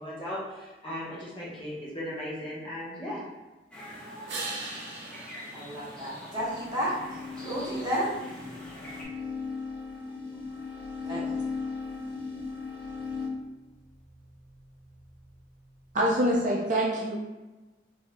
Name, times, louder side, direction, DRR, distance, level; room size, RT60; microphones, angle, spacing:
voice 1, 0.0-3.2, equal, 30° left, -7 dB, 1.1 m, -37 dB
sound 1, 3.7-9.0, equal, 5° left, 0.7 m, -45 dB
sound 2, 4.3-6.8 12.6-16.6, right 2 dB, 80° right, 0.7 m, -44 dB
voice 2, 5.5-7.0 7.4-8.1 11.0-11.4, equal, 25° right, -7 dB, 1.1 m, -32 dB
sound 3, 6.3-13.3, left 4 dB, 75° left, 0.8 m, -37 dB
voice 3, 15.9-17.2, right 1 dB, 45° right, -2 dB, 0.4 m, -25 dB
4.6 x 2.6 x 2.2 m, 1.1 s
head